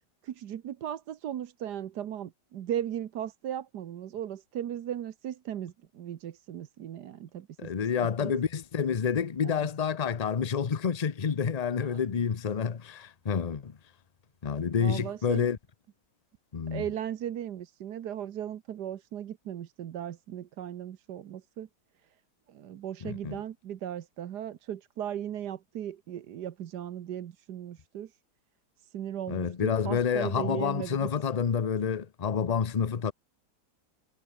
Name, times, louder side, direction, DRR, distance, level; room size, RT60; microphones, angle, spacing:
voice 1, 0.2-7.7 8.0-8.3 9.4-9.7 11.8-12.2 14.8-15.5 16.7-21.7 22.5-28.1 28.9-31.1, right 10 dB, 70° right, 1.5 m, -37 dB
voice 2, 7.6-13.8 14.4-15.6 16.5-16.8 23.0-23.4 29.3-33.1, left 7 dB, 40° left, 0.5 m, -29 dB
omnidirectional pair, 1.9 m